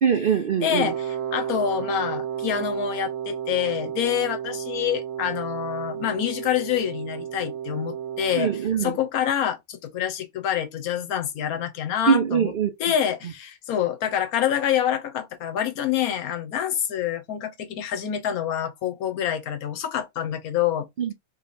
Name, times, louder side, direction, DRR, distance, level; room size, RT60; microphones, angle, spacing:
voice 1, 0.0-0.9 8.3-9.0 12.1-12.7 21.0-21.1, right 7 dB, 55° right, 0.6 m, -22 dB
voice 2, 0.6-8.5 8.8-12.5 12.8-20.9, left 9 dB, 85° left, 1.3 m, -26 dB
Wind instrument woodwind instrument, 0.7-8.7, right 9 dB, 75° right, 1.1 m, -32 dB
3.1 x 3.1 x 4.1 m
omnidirectional pair, 1.5 m